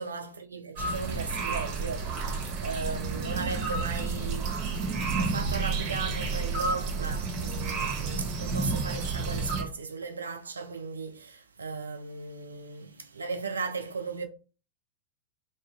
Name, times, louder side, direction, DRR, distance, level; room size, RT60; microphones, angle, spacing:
voice 1, 0.0-4.7 4.9-14.2, right 4 dB, 75° right, 0.5 m, -37 dB
sound 1, 0.8-9.6, right 4 dB, 45° right, 1.4 m, -31 dB
4.1 x 2.4 x 2.4 m
figure-of-eight pair, 90°, 0 cm